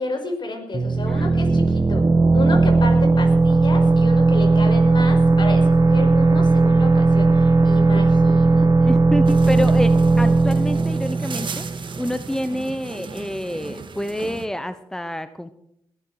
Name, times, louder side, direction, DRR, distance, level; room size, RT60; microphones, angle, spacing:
voice 1, 0.0-2.0 2.3-8.9, left 2 dB, 55° left, 5 dB, 5.6 m, -31 dB
sound 1, 0.7-12.2, right 3 dB, 35° right, 1.8 m, -17 dB
voice 2, 1.1-1.4 8.8-15.5, equal, 5° left, 11 dB, 1.1 m, -28 dB
sound 2, 9.3-14.5, right 5 dB, 60° right, 2.1 m, -36 dB
21.0 x 12.0 x 4.9 m, 0.77 s
cardioid pair, 55°, 9 cm